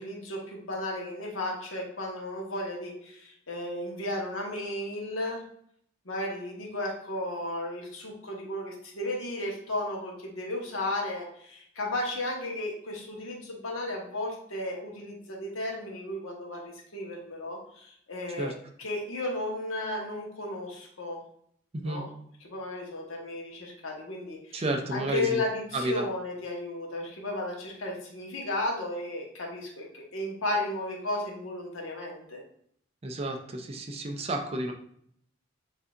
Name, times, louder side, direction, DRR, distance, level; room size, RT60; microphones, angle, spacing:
voice 1, 0.0-5.4 6.0-18.5 18.8-21.2 21.8-22.1 22.4-24.6 24.9-32.4, left 1 dB, 85° left, -1 dB, 1.2 m, -34 dB
voice 2, 24.5-25.4 25.7-26.1 33.0-34.7, right 1 dB, 30° right, 3 dB, 0.5 m, -31 dB
6.6 x 2.7 x 2.5 m, 0.67 s
head